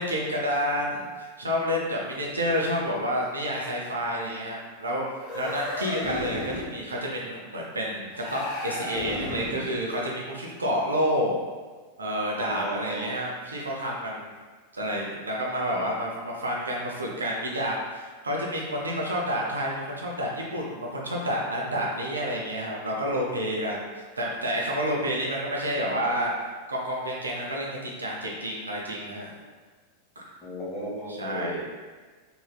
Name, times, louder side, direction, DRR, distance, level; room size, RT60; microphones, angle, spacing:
voice 1, 0.0-11.4 12.0-14.3 14.7-26.3 26.7-29.3 30.2-30.3 31.1-31.6, equal, 75° right, -2 dB, 0.5 m, -29 dB
sound 1, 5.2-6.8 8.1-9.8, left 1 dB, 35° left, 1.1 m, -34 dB
voice 2, 12.3-13.1 30.4-31.7, right 1 dB, 10° left, -9 dB, 1.4 m, -35 dB
3.9 x 3.0 x 2.2 m, 1.4 s
figure-of-eight pair, 90°, 0 cm